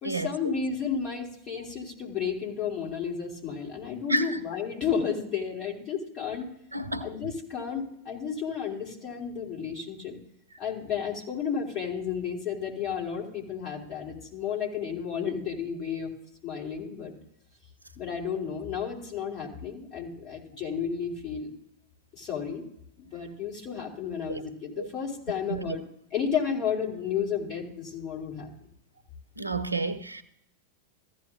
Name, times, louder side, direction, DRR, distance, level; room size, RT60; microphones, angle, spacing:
voice 1, 0.0-6.5 7.0-10.2 10.6-16.1 16.4-17.1 18.0-21.5 22.1-22.6 23.0-25.8 26.1-28.5, left 7 dB, 35° left, 2.7 m, -32 dB
voice 2, 6.7-7.1 24.3-24.4 24.8-24.9 25.5-25.8 29.4-30.2, right 2 dB, 80° right, 0.6 m, -30 dB
15.0 x 10.5 x 2.5 m
figure-of-eight pair, 90°, 0 cm